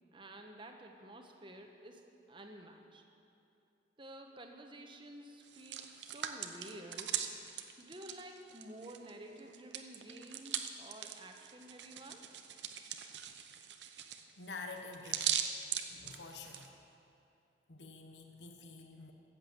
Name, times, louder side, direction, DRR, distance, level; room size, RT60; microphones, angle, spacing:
voice 1, 0.1-3.0 4.0-7.2 7.8-12.5, right 1 dB, 30° right, 4 dB, 1.1 m, -51 dB
Hands, 5.4-9.1 9.4-16.7, right 9 dB, 85° right, 0.8 m, -40 dB
voice 2, 14.4-15.4 15.9-16.8 17.7-19.1, left 3 dB, 80° left, 4 dB, 1.1 m, -48 dB
14.5 x 7.9 x 7.8 m, 2.8 s
head